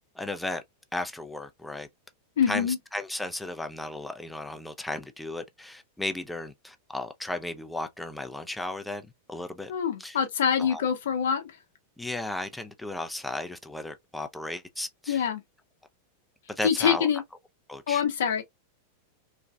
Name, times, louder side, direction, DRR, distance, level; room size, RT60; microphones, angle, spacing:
voice 1, 0.2-0.6 0.9-1.9 2.5-9.7 10.0-10.2 10.6-10.8 12.0-15.3 16.5-17.1 17.7-18.0, left 2 dB, 5° left, 0.4 m, -35 dB
voice 2, 2.4-2.8 9.7-11.5 15.1-15.4 16.6-17.2 17.9-18.4, left 8 dB, 60° left, 0.7 m, -25 dB
3.2 x 2.3 x 2.3 m
figure-of-eight pair, 90°, 0 cm